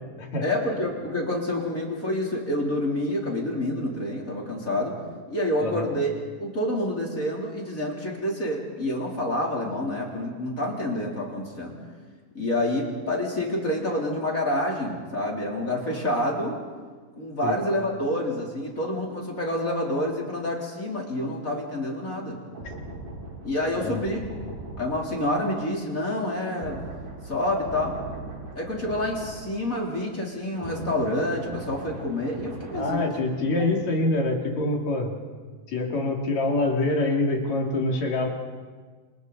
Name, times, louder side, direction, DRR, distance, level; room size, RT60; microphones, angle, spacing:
voice 1, 0.4-4.9 5.3-6.1 6.4-11.8 12.3-16.6 17.2-22.4 23.4-24.2 24.8-26.8 27.3-28.0 28.6-33.0, left 1 dB, 25° left, -2 dB, 3.5 m, -28 dB
sound 1, 22.5-30.0 30.3-34.0 34.3-34.5, right 2 dB, 65° right, 6.1 m, -40 dB
voice 2, 32.7-35.2 35.7-38.3, left 2 dB, 55° left, 0 dB, 3.7 m, -25 dB
29.5 x 28.0 x 4.1 m, 1.5 s
omnidirectional pair, 4.0 m